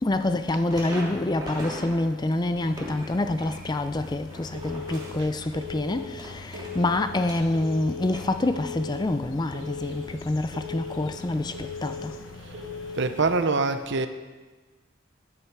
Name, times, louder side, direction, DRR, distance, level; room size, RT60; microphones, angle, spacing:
voice 1, 0.0-12.2, left 2 dB, 20° left, 0.4 m, -27 dB
sound 1, 0.7-2.0 2.3-7.7 8.0-8.3, equal, 20° right, 2.8 m, -40 dB
sound 2, 2.6-13.2, left 3 dB, 65° left, 1.0 m, -45 dB
Telephone, 4.5-5.1 5.5-6.1 6.5-7.1 7.5-8.1 8.5-9.1 9.5-10.1 10.5-11.1 11.5-12.1 12.5-13.1, left 5 dB, 75° right, 2.3 m, -38 dB
voice 2, 12.9-14.1, right 3 dB, 55° right, 0.7 m, -24 dB
13.5 x 9.8 x 4.8 m
head